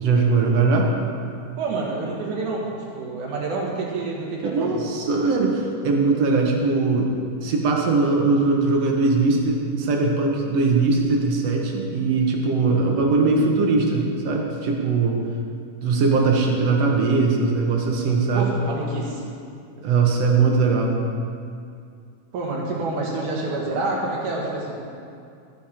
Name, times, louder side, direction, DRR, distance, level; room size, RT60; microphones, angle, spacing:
voice 1, 0.0-0.9 4.4-7.1 7.4-15.2 15.8-18.5 19.8-20.9, right 3 dB, 60° right, 0 dB, 2.1 m, -20 dB
voice 2, 1.6-4.8 18.3-19.2 22.3-24.8, right 3 dB, 85° right, -3 dB, 3.4 m, -28 dB
14.0 x 9.6 x 4.4 m, 2.4 s
omnidirectional pair, 3.4 m